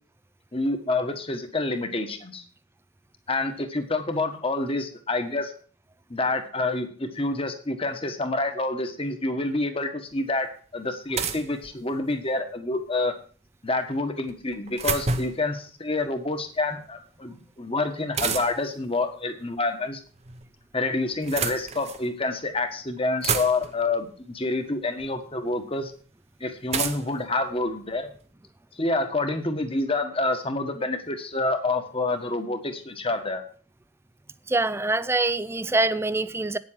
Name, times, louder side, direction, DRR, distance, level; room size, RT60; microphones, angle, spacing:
voice 1, 0.5-2.4 3.3-5.5 6.1-13.1 13.6-20.0 20.7-25.9 26.4-28.1 28.7-33.4, left 2 dB, 25° left, 1.5 m, -28 dB
sound 1, 10.1-10.2 11.1-12.3 14.3-15.5 18.1-18.8 19.9-20.5 21.1-22.1 22.7-22.8 23.0-23.9 25.0-25.1 26.7-28.2, right 5 dB, 30° right, 0.9 m, -30 dB
voice 2, 34.5-36.6, right 2 dB, 10° right, 0.4 m, -24 dB
9.4 x 7.5 x 7.5 m
head